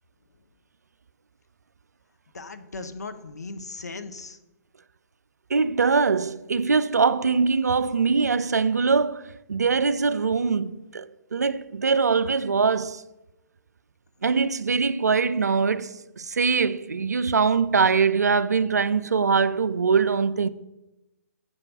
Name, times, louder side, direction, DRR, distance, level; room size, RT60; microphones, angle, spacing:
voice 1, 2.3-4.4, left 3 dB, 75° left, 0.7 m, -37 dB
voice 2, 5.5-13.0 14.2-20.5, right 5 dB, 75° right, 0.4 m, -22 dB
7.6 x 4.5 x 6.1 m
figure-of-eight pair, 130°, 9 cm